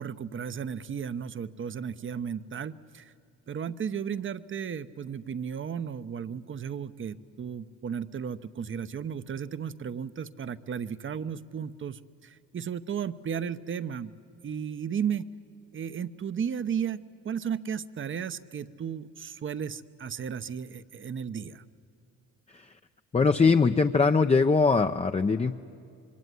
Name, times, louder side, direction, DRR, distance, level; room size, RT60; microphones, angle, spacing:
voice 1, 0.0-3.1 3.5-14.1 14.4-15.3 15.7-17.0 17.2-21.6, right 7 dB, 40° right, 14 dB, 0.9 m, -34 dB
voice 2, 23.1-25.5, left 4 dB, 20° left, 6 dB, 0.6 m, -22 dB
25.5 x 23.5 x 9.4 m, 2.5 s
cardioid pair, 90°, 30 cm